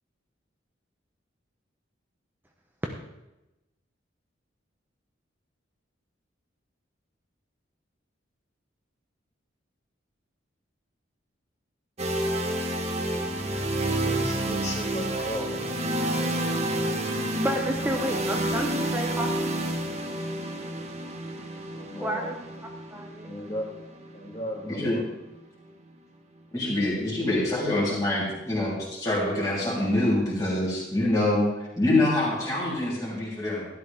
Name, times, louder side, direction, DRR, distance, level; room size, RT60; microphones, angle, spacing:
sound 1, 12.0-25.8, right 1 dB, 35° right, 1.2 m, -30 dB
voice 1, 13.8-16.1 21.7-22.3 23.2-23.7 24.1-25.0, equal, 35° left, -1 dB, 2.5 m, -36 dB
voice 2, 17.1-19.5 22.0-22.5 22.9-23.3, equal, 10° right, 1 dB, 0.8 m, -31 dB
voice 3, 24.7-25.0 26.5-31.5 31.8-33.7, left 1 dB, 20° left, -8 dB, 3.3 m, -25 dB
13.0 x 12.0 x 3.5 m, 0.95 s
head